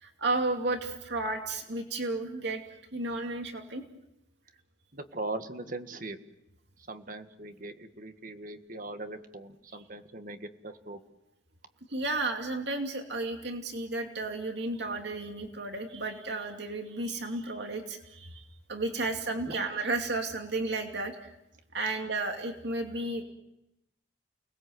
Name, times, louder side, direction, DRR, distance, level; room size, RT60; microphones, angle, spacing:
voice 1, 0.0-2.6 2.9-3.8 11.9-18.4 18.7-21.3 21.7-23.2, right 2 dB, 60° right, 4 dB, 2.6 m, -33 dB
voice 2, 4.9-6.2 6.9-11.0 19.5-19.6, right 2 dB, 45° right, 8 dB, 1.8 m, -40 dB
29.5 x 20.5 x 7.9 m, 0.87 s
head